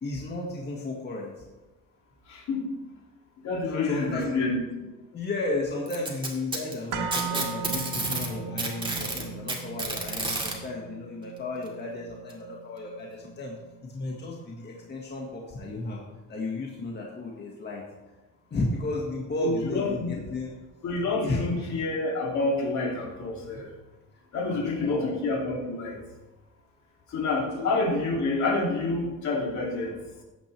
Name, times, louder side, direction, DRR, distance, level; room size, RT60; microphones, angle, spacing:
voice 1, 0.0-1.4 3.6-4.4 5.1-16.0 16.3-17.8 18.5-20.5 21.2-21.6 24.4-25.2 27.5-27.7, left 2 dB, 30° left, -2 dB, 1.8 m, -33 dB
voice 2, 2.3-2.7 3.4-4.6 19.4-20.1 20.8-23.7 24.3-26.0 27.1-30.0, left 3 dB, 55° left, -1 dB, 2.8 m, -28 dB
Packing tape duct tape, 5.9-8.3 8.6-10.5 11.7-11.8 12.3-12.4 13.2-13.3, right 2 dB, 15° right, 2.3 m, -30 dB
sound 1, 6.9-15.0 15.3-15.4, right 6 dB, 70° right, 1.6 m, -39 dB
14.5 x 9.1 x 3.4 m, 1.1 s
cardioid pair, 120°, 33 cm